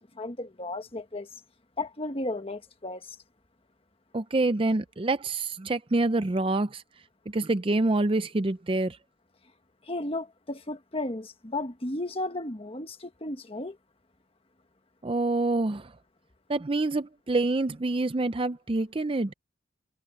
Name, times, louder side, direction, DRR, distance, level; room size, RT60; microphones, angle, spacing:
voice 1, 0.1-1.3 1.8-3.2 9.9-13.8, left 2 dB, 30° left, 1.5 m, -34 dB
voice 2, 4.1-6.8 7.3-9.0 15.0-15.9 16.5-19.3, right 2 dB, 25° right, 0.5 m, -26 dB
head